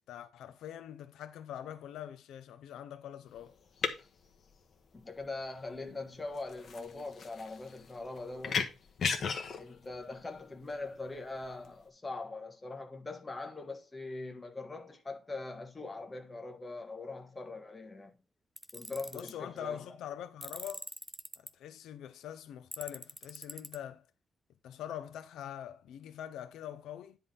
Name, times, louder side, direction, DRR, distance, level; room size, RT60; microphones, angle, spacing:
voice 1, 0.1-3.5 19.1-20.9 21.4-24.1 24.6-27.2, left 10 dB, 90° left, 0.8 m, -44 dB
sound 1, 3.3-11.8, left 5 dB, 45° left, 1.3 m, -38 dB
voice 2, 4.9-8.8 9.5-18.1 18.7-20.0, left 3 dB, 15° left, 1.4 m, -42 dB
Tools, 18.6-19.3 20.4-21.5 22.7-23.8, equal, 5° right, 0.4 m, -44 dB
10.0 x 3.6 x 5.5 m
cardioid pair, 150°, 0 cm